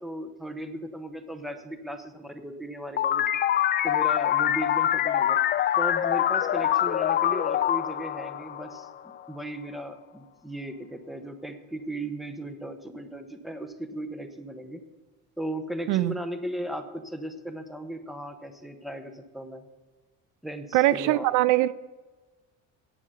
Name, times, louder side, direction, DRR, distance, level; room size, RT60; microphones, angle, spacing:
voice 1, 0.0-3.3 3.8-5.4 5.8-8.9 9.3-14.8 15.4-19.6 20.4-21.3, right 1 dB, ahead, 7 dB, 0.9 m, -36 dB
sound 1, 3.0-9.2, left 11 dB, 30° left, 0.4 m, -25 dB
voice 2, 20.7-21.7, right 16 dB, 70° right, 18 dB, 0.5 m, -22 dB
11.0 x 8.6 x 6.7 m, 1.3 s
cardioid pair, 140°, 32 cm